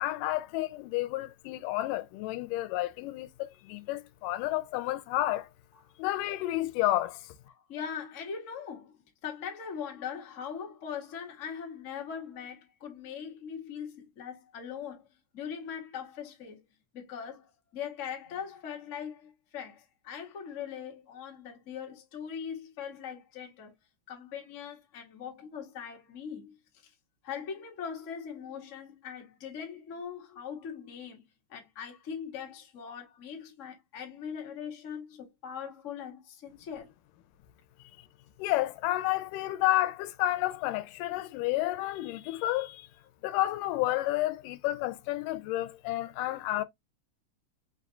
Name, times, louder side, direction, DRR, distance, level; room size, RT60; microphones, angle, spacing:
voice 1, 0.0-5.5 6.0-7.3 38.4-42.9 43.2-46.6, left 16 dB, 85° left, 2.1 m, -30 dB
voice 2, 7.5-15.1 15.3-16.6 16.9-23.7 24.1-26.5 26.8-26.9 27.2-36.9, left 7 dB, 65° left, 0.7 m, -41 dB
5.2 x 2.3 x 3.7 m
omnidirectional pair, 3.7 m